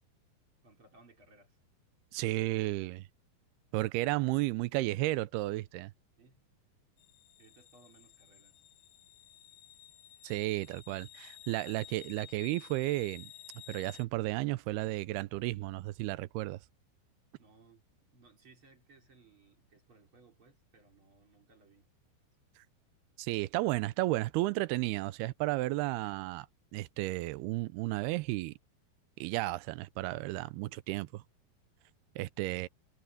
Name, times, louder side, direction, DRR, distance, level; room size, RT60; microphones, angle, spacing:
voice 1, 0.6-1.6 6.2-6.4 7.4-8.6 17.4-21.9 30.6-30.8, right 3 dB, 35° right, 3.7 m, -62 dB
voice 2, 2.1-3.0 3.7-5.9 10.2-13.3 13.7-16.6 23.2-26.5 26.7-28.5 29.2-31.2 32.2-32.7, right 18 dB, 85° right, 2.7 m, -33 dB
sound 1, 7.0-14.0, left 13 dB, 75° left, 2.5 m, -54 dB
omnidirectional pair, 4.5 m